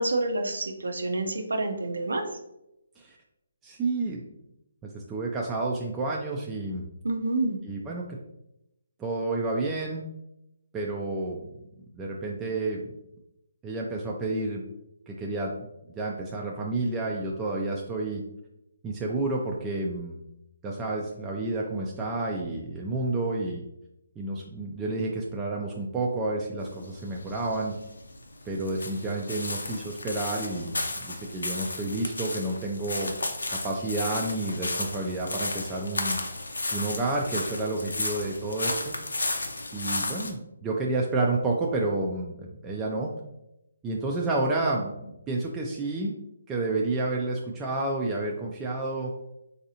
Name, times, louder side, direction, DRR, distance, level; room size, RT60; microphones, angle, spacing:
voice 1, 0.0-2.3 7.0-7.6, right 2 dB, 85° right, 5 dB, 0.5 m, -28 dB
voice 2, 3.6-4.2 4.8-6.8 7.6-8.2 9.0-10.1 10.7-11.5 11.9-12.9 13.6-14.6 15.1-15.5 16.0-18.2 18.8-20.2 20.6-23.6 24.2-27.8 28.5-33.1 33.5-36.2 36.7-39.0 39.7-43.1 43.8-46.1 46.5-49.1, right 2 dB, 15° right, -2 dB, 0.3 m, -30 dB
sound 1, 26.6-40.3, left 2 dB, 90° left, 0.6 m, -33 dB
3.9 x 2.6 x 2.7 m, 0.86 s
hypercardioid pair, 155°, 0 cm